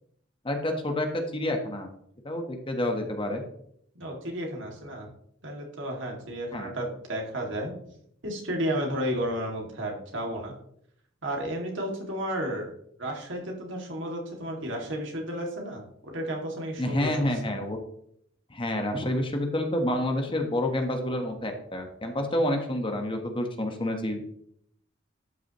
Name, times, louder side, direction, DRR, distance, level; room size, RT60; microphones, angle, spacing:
voice 1, 0.4-1.9 2.2-3.4 6.5-6.7 16.8-17.8 18.5-24.2, left 1 dB, 25° left, 4 dB, 1.2 m, -28 dB
voice 2, 3.9-5.1 5.4-7.7 8.2-10.5 11.2-12.7 13.0-17.5, equal, 70° right, 0 dB, 2.3 m, -33 dB
12.0 x 5.9 x 3.0 m, 0.68 s
head